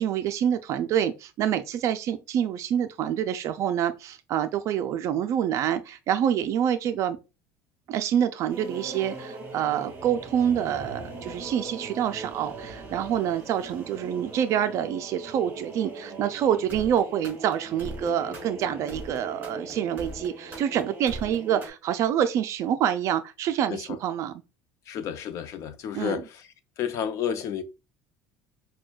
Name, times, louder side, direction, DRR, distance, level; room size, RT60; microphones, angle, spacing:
voice 1, 0.0-7.2 7.9-24.3 25.9-26.2, right 9 dB, 50° right, 0.3 m, -27 dB
sound 1, 8.5-21.7, right 2 dB, 25° right, 2.2 m, -40 dB
voice 2, 24.9-26.5 26.8-27.6, left 8 dB, 50° left, 0.6 m, -31 dB
6.0 x 2.2 x 2.3 m
cardioid pair, 125°, 7 cm